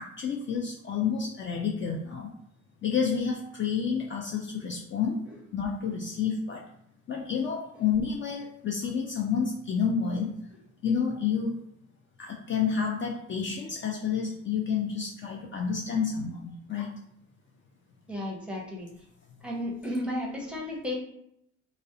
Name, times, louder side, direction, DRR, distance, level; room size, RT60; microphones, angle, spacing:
voice 1, 0.0-2.3 2.8-5.2 5.5-6.7 7.1-10.3 10.8-11.6 12.2-16.9, left 6 dB, 40° left, 0 dB, 0.4 m, -29 dB
voice 2, 18.1-18.9 19.4-20.9, left 1 dB, 5° right, -2 dB, 0.7 m, -33 dB
2.4 x 2.0 x 2.6 m, 0.74 s
cardioid pair, 90°, 30 cm